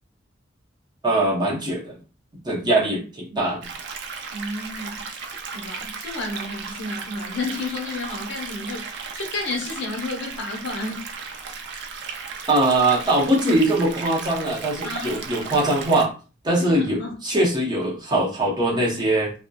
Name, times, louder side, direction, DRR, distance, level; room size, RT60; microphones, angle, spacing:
voice 1, 1.0-1.9 2.4-3.7 12.5-16.1 16.4-19.3, right 1 dB, 25° right, 0.7 m, -21 dB
sound 1, 3.6-16.1, right 5 dB, 65° right, 0.4 m, -35 dB
voice 2, 4.3-5.1 5.5-11.1 14.8-15.5 16.6-17.1, left 3 dB, 65° left, 0.8 m, -32 dB
2.6 x 2.1 x 2.3 m
head